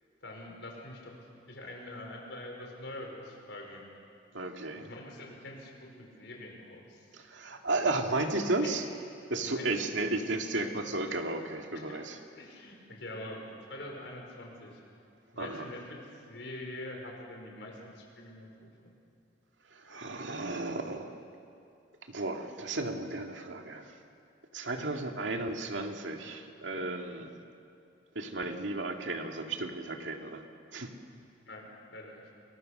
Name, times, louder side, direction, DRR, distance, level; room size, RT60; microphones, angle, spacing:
voice 1, 0.2-1.2 1.5-3.8 4.7-7.1 8.6-8.7 9.4-10.1 11.7-12.0 12.3-14.8 15.3-18.7 24.7-25.0 31.5-32.2, left 1 dB, 75° left, 1 dB, 5.2 m, -45 dB
voice 2, 4.3-4.9 7.1-8.8 9.3-12.2 15.4-15.7 19.7-21.1 22.1-23.9 24.5-27.3 28.2-30.4 30.7-30.9, right 2 dB, 90° right, 3 dB, 2.2 m, -34 dB
29.5 x 22.0 x 6.7 m, 2.5 s
head